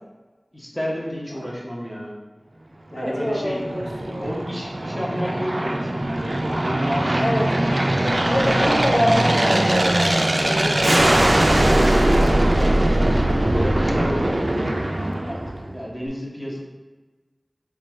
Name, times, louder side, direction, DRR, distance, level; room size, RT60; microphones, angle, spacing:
voice 1, 0.5-2.1 2.9-3.6 4.2-8.6 12.0-15.4 15.7-16.6, equal, 15° left, -4 dB, 1.0 m, -31 dB
voice 2, 2.9-4.4 7.2-7.4 8.3-11.8, equal, 70° left, -4 dB, 0.8 m, -26 dB
Aircraft, 3.0-15.8, right 1 dB, 50° right, 0.3 m, -21 dB
5.2 x 2.3 x 3.1 m, 1.3 s
wide cardioid pair, 50°, 0 cm